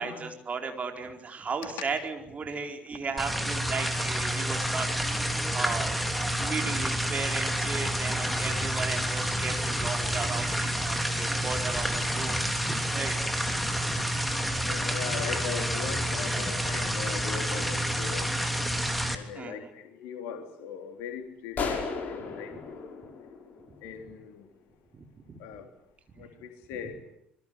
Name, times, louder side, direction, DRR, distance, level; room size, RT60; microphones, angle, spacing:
voice 1, 0.0-4.9 5.5-6.0 6.4-12.4 12.7-13.2 13.5-13.6 19.3-19.6 24.9-25.4, right 5 dB, 30° right, 4 dB, 4.4 m, -35 dB
sound 1, 3.2-19.2, equal, ahead, 3.2 m, -29 dB
voice 2, 14.6-18.3 19.1-22.9 23.8-24.5 25.4-25.7 26.2-27.0, left 7 dB, 60° left, 6 dB, 3.7 m, -40 dB
sound 2, 21.6-24.1, left 5 dB, 40° left, 6.1 m, -35 dB
27.0 x 22.5 x 8.2 m, 0.74 s
figure-of-eight pair, 55°, 5 cm